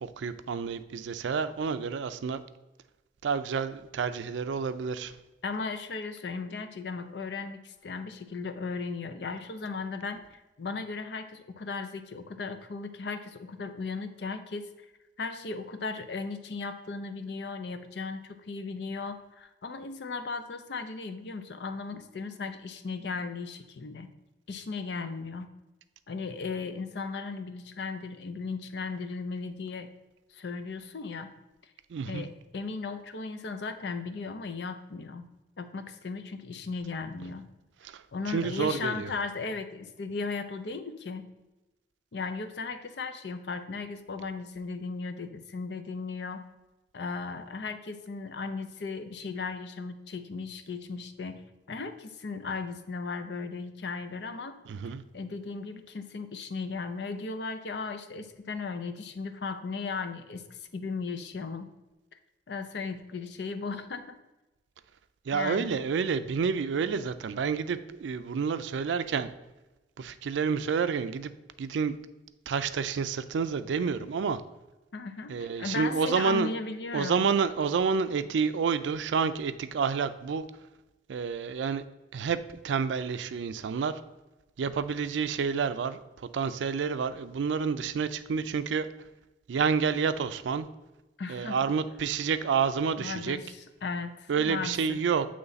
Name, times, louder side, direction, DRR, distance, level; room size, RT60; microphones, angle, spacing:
voice 1, 0.0-2.4 3.2-5.1 31.9-32.2 37.8-38.0 38.3-39.1 54.7-55.0 65.3-69.3 70.0-71.3 71.6-71.9 72.5-74.4 75.3-76.5 76.9-80.4 81.1-81.8 82.1-82.4 82.6-83.9 84.6-86.0 86.3-88.9 89.5-90.7 91.3-93.4 94.3-95.3, right 6 dB, 85° right, 12 dB, 0.4 m, -29 dB
voice 2, 5.4-14.7 15.2-24.1 24.5-25.5 26.1-29.9 30.3-31.3 32.1-35.3 35.6-37.4 38.1-41.3 42.1-46.4 46.9-51.4 51.7-54.6 55.1-61.7 62.5-64.2 65.3-65.9 74.9-77.3 91.2-91.7 93.0-95.0, left 4 dB, 65° left, 9 dB, 0.5 m, -36 dB
7.9 x 3.2 x 4.0 m, 1.0 s
head